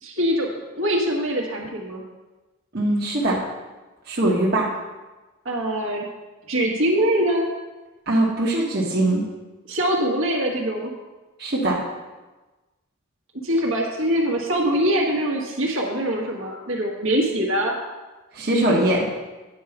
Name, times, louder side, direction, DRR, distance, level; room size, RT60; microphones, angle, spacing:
voice 1, 0.0-2.0 5.4-6.1 6.5-7.5 9.7-10.9 13.4-17.8, right 1 dB, 70° right, -1 dB, 1.6 m, -23 dB
voice 2, 2.7-3.4 4.1-4.7 8.1-9.2 11.4-11.8 18.3-19.1, right 1 dB, 45° right, -5 dB, 1.3 m, -21 dB
9.4 x 4.7 x 5.9 m, 1.2 s
head